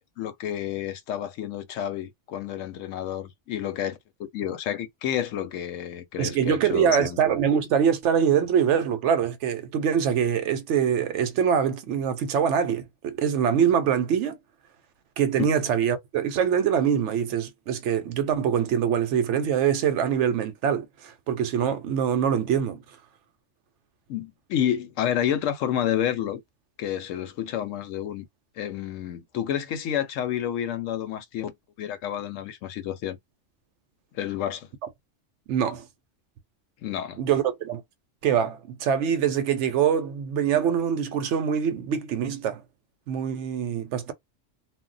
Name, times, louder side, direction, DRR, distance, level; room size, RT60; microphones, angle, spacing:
voice 1, 0.2-4.0 4.3-7.2 24.1-26.4 26.8-28.2 28.6-31.5 31.8-33.2 34.1-34.7 36.8-37.2, left 10 dB, 85° left, 0.9 m, -29 dB
voice 2, 6.2-14.4 15.2-22.8 35.5-35.9 37.2-37.8 38.2-42.6 43.1-44.1, right 8 dB, 70° right, 0.9 m, -24 dB
2.2 x 2.1 x 3.8 m
omnidirectional pair, 1.3 m